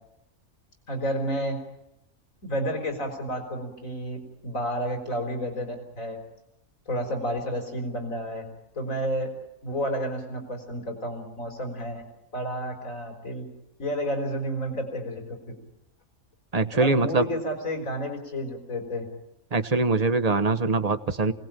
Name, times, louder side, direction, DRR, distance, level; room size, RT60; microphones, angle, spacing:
voice 1, 0.9-1.6 2.4-6.2 6.9-8.4 8.7-9.3 9.6-12.0 12.3-13.5 13.8-15.6 16.7-19.1, equal, 75° left, 4 dB, 4.5 m, -31 dB
voice 2, 16.5-17.2 19.5-21.3, right 3 dB, 30° right, 9 dB, 1.1 m, -23 dB
28.5 x 18.5 x 9.0 m, 0.89 s
omnidirectional pair, 1.4 m